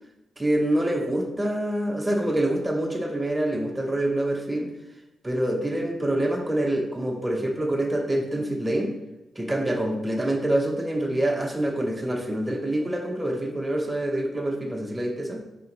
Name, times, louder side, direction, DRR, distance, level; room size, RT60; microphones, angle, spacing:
voice 1, 0.4-4.7 5.2-9.0 9.3-15.4, right 1 dB, 15° right, 2 dB, 0.9 m, -26 dB
4.4 x 2.8 x 3.8 m, 0.95 s
supercardioid pair, 45°, 0 cm